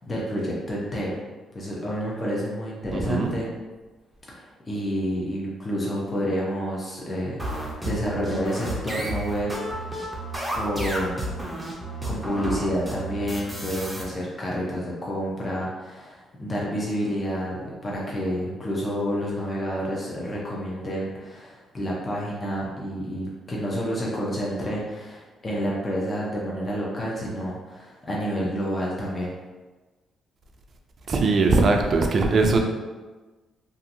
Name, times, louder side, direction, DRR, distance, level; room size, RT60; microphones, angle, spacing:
voice 1, 0.1-1.2 1.5-3.5 4.3-10.0 10.5-11.4 12.0-29.3, equal, 30° left, -5 dB, 0.7 m, -29 dB
voice 2, 2.9-3.3 31.1-32.6, right 3 dB, 50° right, 3 dB, 0.4 m, -20 dB
sound 1, 7.4-14.0, right 1 dB, 5° right, 0.6 m, -32 dB
2.7 x 2.6 x 2.6 m, 1.3 s
cardioid pair, 90°, 0 cm